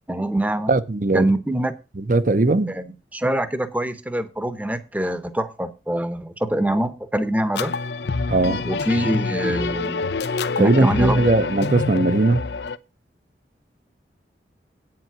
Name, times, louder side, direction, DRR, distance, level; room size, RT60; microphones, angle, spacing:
voice 1, 0.1-0.7 1.1-1.7 2.7-7.7 8.6-10.1 10.6-11.3, right 1 dB, 10° right, 0.9 m, -24 dB
voice 2, 0.7-1.3 2.1-2.8 8.3-8.7 10.6-12.4, right 2 dB, 50° right, 0.8 m, -19 dB
sound 1, 7.5-12.8, left 4 dB, 75° left, 0.6 m, -26 dB
8.9 x 7.6 x 5.8 m
head